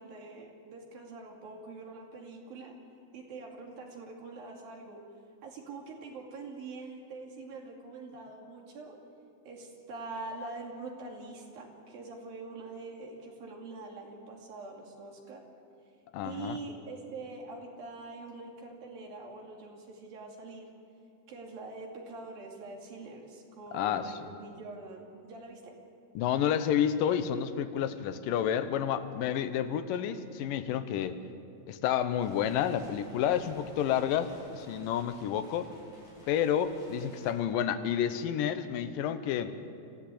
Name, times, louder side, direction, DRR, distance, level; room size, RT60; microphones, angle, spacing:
voice 1, 0.0-2.7 3.1-5.0 5.4-9.0 9.5-15.4 16.2-20.7 21.3-25.7, right 3 dB, 65° right, 0 dB, 4.2 m, -44 dB
voice 2, 16.1-16.6 23.7-24.1 26.2-31.2 31.7-35.7 36.3-39.5, left 9 dB, 70° left, 10 dB, 2.3 m, -30 dB
sound 1, 32.2-37.3, left 1 dB, 40° left, 8.8 m, -56 dB
26.0 x 15.0 x 8.5 m, 2.5 s
omnidirectional pair, 4.7 m